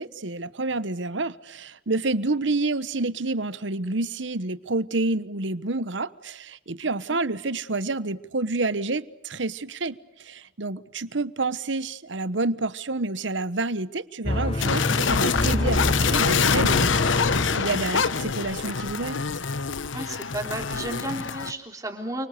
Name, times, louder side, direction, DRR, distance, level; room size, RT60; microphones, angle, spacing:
voice 1, 0.0-19.2, right 3 dB, 75° right, 15 dB, 1.2 m, -29 dB
sound 1, 14.3-18.3, left 1 dB, 30° left, 1.0 m, -27 dB
sound 2, 14.6-21.5, left 5 dB, 80° left, 1.0 m, -25 dB
voice 2, 19.9-22.3, right 1 dB, 20° right, 3 dB, 3.4 m, -33 dB
30.0 x 25.0 x 6.7 m, 0.81 s
head